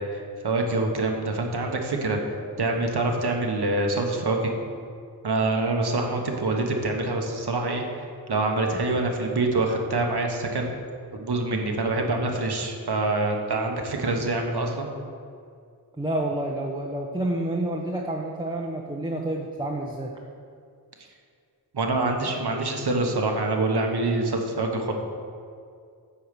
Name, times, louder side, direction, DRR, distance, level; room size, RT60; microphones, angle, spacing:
voice 1, 0.0-2.2 2.6-4.5 5.2-10.7 11.1-14.9 21.7-24.9, right 2 dB, 75° right, 2 dB, 1.2 m, -25 dB
voice 2, 16.0-20.1, right 1 dB, 10° right, -1 dB, 0.8 m, -29 dB
8.5 x 4.7 x 6.8 m, 2.3 s
wide cardioid pair, 65°, 39 cm